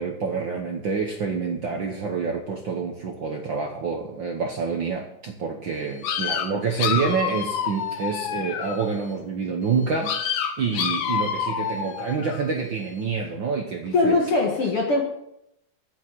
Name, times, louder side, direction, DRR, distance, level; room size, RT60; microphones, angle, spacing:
voice 1, 0.0-10.1 10.6-14.2, right 5 dB, 75° right, 2 dB, 1.1 m, -27 dB
sound 1, 6.0-8.9 10.0-12.5, left 8 dB, 65° left, 2.0 m, -28 dB
voice 2, 13.9-15.0, left 3 dB, 50° left, 0 dB, 2.2 m, -21 dB
8.7 x 8.2 x 9.3 m, 0.79 s
omnidirectional pair, 3.7 m